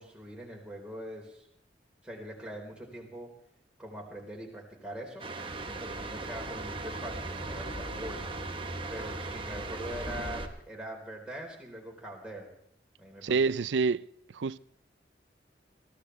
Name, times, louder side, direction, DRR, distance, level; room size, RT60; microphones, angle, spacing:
voice 1, 0.0-1.5 2.0-3.3 3.8-5.3 5.6-8.4 8.9-12.6 13.0-13.5, right 1 dB, 5° right, 4.2 m, -42 dB
sound 1, 5.2-10.5, right 3 dB, 30° right, 1.3 m, -39 dB
sound 2, 5.5-10.5, equal, 75° left, 7.4 m, -43 dB
voice 2, 13.2-14.0 14.3-14.6, right 4 dB, 90° right, 0.5 m, -27 dB
23.5 x 15.5 x 3.4 m
head